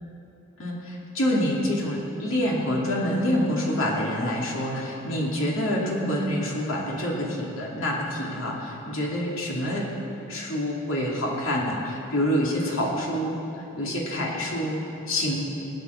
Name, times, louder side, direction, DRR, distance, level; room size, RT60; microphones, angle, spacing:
voice 1, 0.6-9.9 10.3-13.4 13.7-15.4, equal, 70° left, -3 dB, 2.7 m, -27 dB
23.0 x 8.8 x 7.0 m, 3.0 s
head